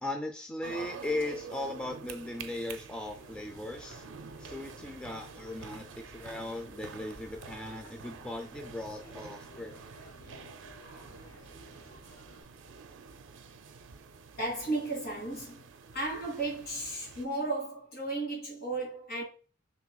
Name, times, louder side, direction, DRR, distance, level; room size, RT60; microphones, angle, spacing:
voice 1, 0.0-4.1 4.4-9.8, left 2 dB, 5° left, 0.3 m, -38 dB
sound 1, 0.6-17.3, right 5 dB, 70° right, 0.4 m, -48 dB
sound 2, 3.0-12.4, right 1 dB, 20° left, 1.7 m, -54 dB
voice 2, 10.7-11.3 11.9-12.3 14.4-19.2, right 2 dB, 55° left, 2.1 m, -36 dB
5.5 x 3.1 x 2.2 m
head